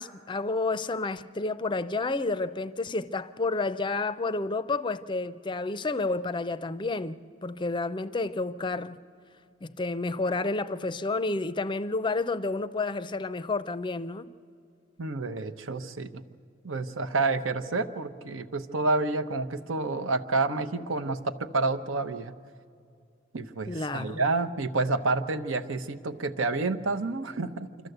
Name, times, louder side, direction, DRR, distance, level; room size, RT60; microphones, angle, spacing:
voice 1, 0.0-9.0 9.6-14.3 23.7-24.2, left 3 dB, 25° left, 0.5 m, -30 dB
voice 2, 15.0-16.2 16.6-22.3 23.3-27.7, right 3 dB, 80° right, 0.9 m, -29 dB
26.0 x 13.5 x 7.9 m
head